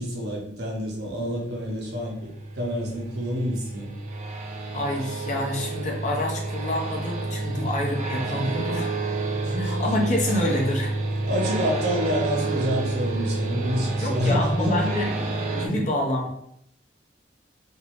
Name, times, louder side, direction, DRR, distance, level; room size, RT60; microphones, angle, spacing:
voice 1, 0.0-3.9 7.4-7.7 8.3-8.8 9.4-9.8 11.2-15.1 15.6-15.8, equal, 60° right, -2 dB, 0.8 m, -28 dB
sound 1, 0.9-15.7, right 2 dB, 40° right, 0.4 m, -29 dB
voice 2, 4.7-8.9 9.6-10.9 14.0-16.3, left 1 dB, 40° left, -1 dB, 0.6 m, -27 dB
3.0 x 2.6 x 2.9 m, 0.72 s
head